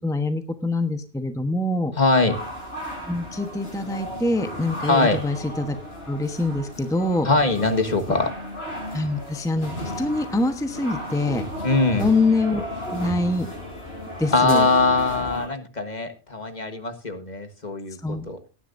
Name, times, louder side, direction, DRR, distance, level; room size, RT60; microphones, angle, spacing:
voice 1, 0.0-1.9 3.1-5.8 6.1-7.3 8.9-11.4 12.0-13.5 14.2-14.6 18.0-18.3, left 2 dB, 5° left, 8 dB, 1.0 m, -24 dB
voice 2, 1.9-2.4 4.9-5.2 7.2-8.3 11.6-12.1 14.3-18.4, left 3 dB, 40° left, 8 dB, 1.6 m, -22 dB
sound 1, 2.2-15.5, left 1 dB, 65° left, 7.4 m, -35 dB
19.0 x 10.0 x 2.6 m, 0.32 s
omnidirectional pair, 1.1 m